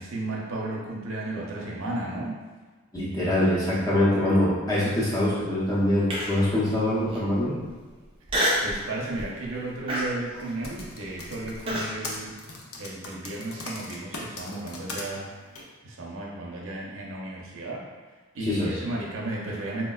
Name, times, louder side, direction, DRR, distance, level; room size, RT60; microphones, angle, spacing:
voice 1, 0.0-2.4 8.6-12.3 12.8-15.3 15.8-17.8 18.3-19.9, right 2 dB, 70° right, -3 dB, 0.6 m, -34 dB
voice 2, 2.9-7.6 18.4-18.7, left 1 dB, 15° left, -8 dB, 0.7 m, -24 dB
Human voice, 6.1-6.5 7.1-7.2 8.3-8.8 9.2-9.5 9.9-11.9, equal, 25° right, 0.5 m, -27 dB
Typing, 10.4-15.0 15.5-15.6, left 2 dB, 90° left, 0.5 m, -38 dB
4.3 x 2.1 x 2.3 m, 1.3 s
head